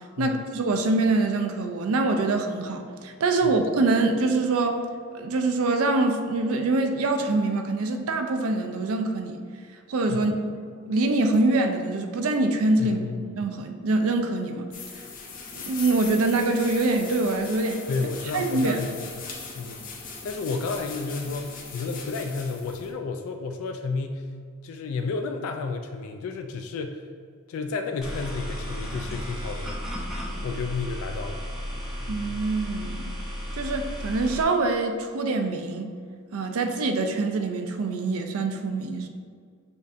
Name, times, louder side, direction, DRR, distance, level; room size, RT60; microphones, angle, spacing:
voice 1, 0.2-4.8 5.1-9.4 9.9-10.4 10.8-13.0 13.4-14.7 15.5-17.8 18.3-18.8 32.1-33.0 33.5-35.9 36.3-39.1, right 2 dB, 75° right, 5 dB, 0.4 m, -24 dB
voice 2, 12.8-13.4 17.9-19.9 20.2-24.2 24.6-27.0 27.5-29.8 30.4-31.4, left 4 dB, 70° left, 5 dB, 0.3 m, -32 dB
sound 1, 14.7-22.9, left 4 dB, 40° left, 0.7 m, -40 dB
sound 2, 28.0-34.4, equal, ahead, 0.6 m, -34 dB
6.8 x 2.7 x 2.5 m, 2.1 s
head